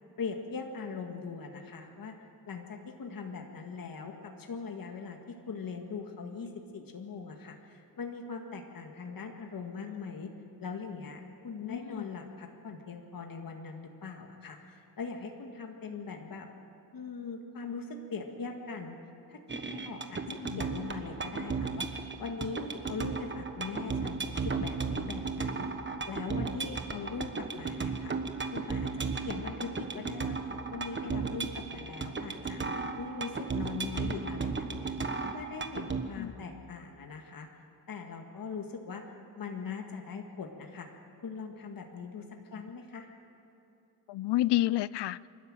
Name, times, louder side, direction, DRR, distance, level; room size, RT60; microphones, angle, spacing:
voice 1, 0.2-2.1 2.5-10.3 10.6-16.5 16.9-19.0 19.3-19.4 19.7-20.2 20.6-21.9 22.2-25.7 26.0-28.1 28.5-30.4 30.7-32.6 32.9-34.9 35.3-37.5 37.9-39.0 39.4-40.9 41.2-43.1, left 5 dB, 55° left, 3 dB, 1.9 m, -41 dB
voice 2, 11.6-12.1 20.3-20.6 36.2-36.3 44.1-45.2, left 15 dB, 85° left, 20 dB, 0.5 m, -30 dB
sound 1, 19.5-36.0, right 4 dB, 30° right, 1.3 m, -35 dB
27.5 x 12.5 x 8.9 m, 2.8 s
wide cardioid pair, 120°, 40 cm